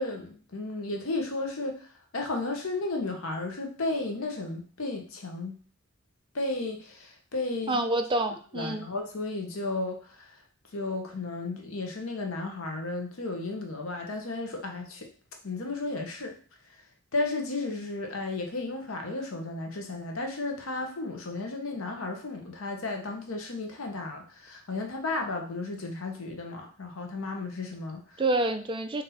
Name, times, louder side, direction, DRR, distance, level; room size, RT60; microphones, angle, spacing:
voice 1, 0.0-1.9 2.1-5.6 6.3-7.8 8.5-10.4 10.7-15.1 15.4-16.3 17.1-28.0, left 2 dB, 75° left, 3 dB, 0.9 m, -33 dB
voice 2, 7.7-8.8 28.2-29.0, right 2 dB, 25° right, 6 dB, 0.4 m, -27 dB
3.9 x 2.6 x 4.2 m, 0.42 s
head